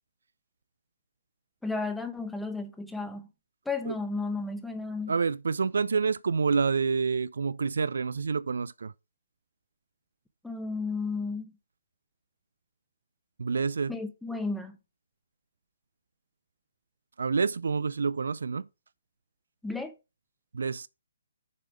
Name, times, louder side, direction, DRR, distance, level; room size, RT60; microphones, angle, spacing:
voice 1, 1.6-3.3 3.7-5.1 10.4-11.5 13.9-14.8 19.6-19.9, left 3 dB, 5° left, 1.0 m, -33 dB
voice 2, 5.1-8.9 13.4-13.9 17.2-18.7 20.5-20.9, right 5 dB, 65° right, 0.3 m, -28 dB
6.7 x 5.0 x 6.2 m
figure-of-eight pair, 135°, 0 cm